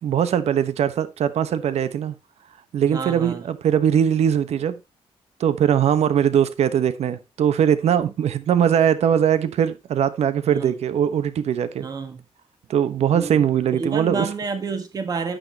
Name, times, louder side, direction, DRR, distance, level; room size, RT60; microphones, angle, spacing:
voice 1, 0.0-2.1 2.7-4.8 5.4-11.8 12.7-14.3, right 9 dB, 80° right, 1.1 m, -21 dB
voice 2, 2.9-3.5 8.0-8.1 10.4-10.7 11.8-12.2 13.1-15.4, right 4 dB, 35° right, 1.6 m, -30 dB
10.5 x 9.4 x 2.9 m
wide cardioid pair, 180°, 11 cm